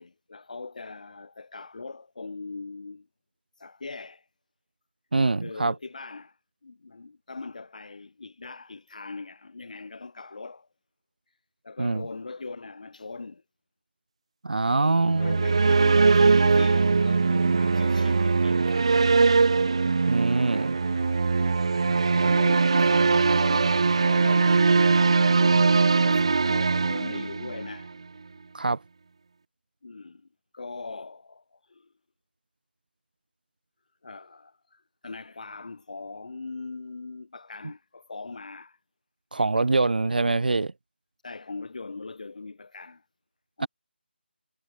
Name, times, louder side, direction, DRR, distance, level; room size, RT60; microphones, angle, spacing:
voice 1, 0.0-3.1 3.6-4.3 5.4-6.4 6.6-10.7 11.6-13.4 14.8-18.9 20.5-20.8 21.7-27.9 29.8-30.3 30.5-31.9 34.0-38.8 41.2-43.0 43.6-43.7, left 3 dB, 45° left, 3.6 m, -40 dB
voice 2, 5.1-5.7 11.8-12.0 14.4-15.4 20.1-20.8 28.5-28.8 39.3-40.7 43.6-43.7, right 3 dB, 55° right, 1.2 m, -24 dB
sound 1, 15.0-27.9, right 4 dB, 30° right, 0.8 m, -21 dB
figure-of-eight pair, 180°, 6 cm